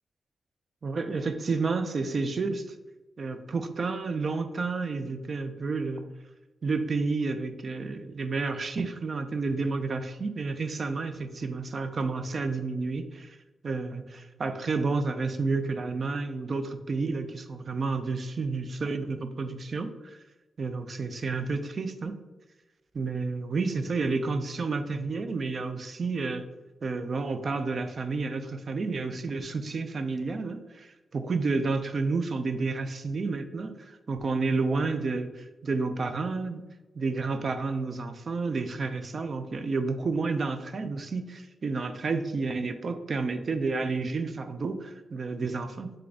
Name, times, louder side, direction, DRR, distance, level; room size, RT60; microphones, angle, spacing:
voice 1, 0.8-2.6 3.2-6.1 6.6-13.4 13.6-20.2 20.6-22.1 22.9-26.4 26.8-36.6 37.0-45.9, right 4 dB, 45° right, 8 dB, 0.4 m, -30 dB
3.8 x 3.3 x 3.5 m, 1.1 s
wide cardioid pair, 120°, 0 cm